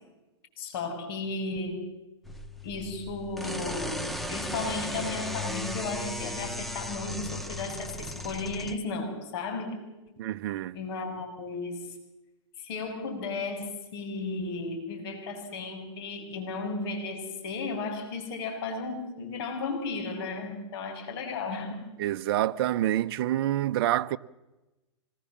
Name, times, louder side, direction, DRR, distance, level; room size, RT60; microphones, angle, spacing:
voice 1, 0.6-1.8 2.6-4.0 4.3-9.8 10.7-12.0 12.6-22.0, left 3 dB, 55° left, 6.5 m, -34 dB
sound 1, 2.2-8.8, left 1 dB, ahead, 1.2 m, -36 dB
voice 2, 10.2-10.8 22.0-24.2, right 13 dB, 50° right, 0.9 m, -27 dB
25.5 x 20.0 x 7.4 m
hypercardioid pair, 125°, 15 cm